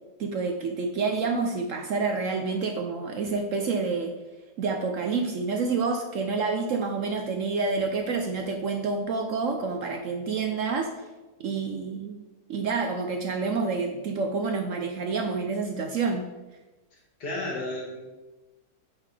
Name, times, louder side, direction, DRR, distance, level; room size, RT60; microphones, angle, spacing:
voice 1, 0.2-4.2 4.6-10.9 11.4-12.2 12.5-16.2, right 4 dB, 65° right, 3 dB, 0.9 m, -28 dB
voice 2, 17.2-18.0, left 1 dB, 75° left, -3 dB, 2.4 m, -32 dB
8.9 x 5.7 x 3.3 m, 1.1 s
omnidirectional pair, 1.8 m